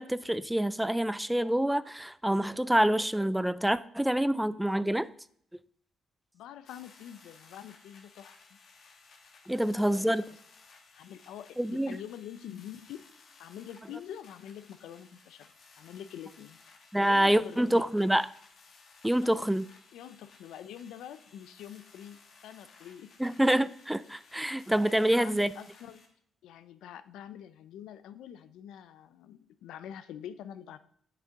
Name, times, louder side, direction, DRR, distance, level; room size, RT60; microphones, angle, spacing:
voice 1, 0.0-5.1 9.5-10.2 11.6-12.0 16.9-18.3 19.0-19.7 23.2-25.5, right 1 dB, 5° right, 16 dB, 0.3 m, -26 dB
voice 2, 6.3-8.6 9.5-10.4 10.9-13.0 13.4-16.6 17.0-17.9 19.2-19.5 19.9-23.1 24.8-26.0 26.4-30.8, left 10 dB, 85° left, 13 dB, 0.5 m, -46 dB
sound 1, 6.7-26.1, left 4 dB, 60° left, 1.5 m, -58 dB
8.1 x 6.6 x 3.7 m, 0.66 s
cardioid pair, 90°, 0 cm